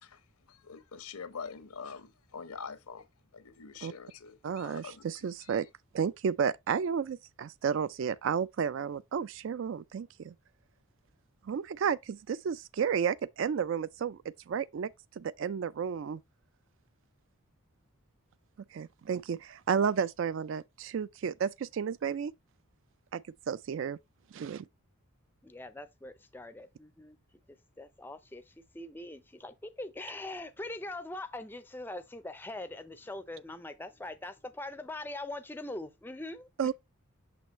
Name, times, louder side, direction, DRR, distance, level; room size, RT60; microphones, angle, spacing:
voice 1, 0.5-3.1 3.3-5.0 5.4-5.6, left 5 dB, 90° left, 0.8 m, -45 dB
voice 2, 4.4-5.7 5.9-10.3 11.4-14.2 14.5-16.2 18.7-22.3 23.1-24.0 24.3-24.7 36.6-36.7, right 7 dB, 60° right, 0.3 m, -32 dB
voice 3, 25.4-27.2 27.8-36.5, left 2 dB, 10° left, 0.4 m, -42 dB
6.1 x 5.7 x 2.9 m
head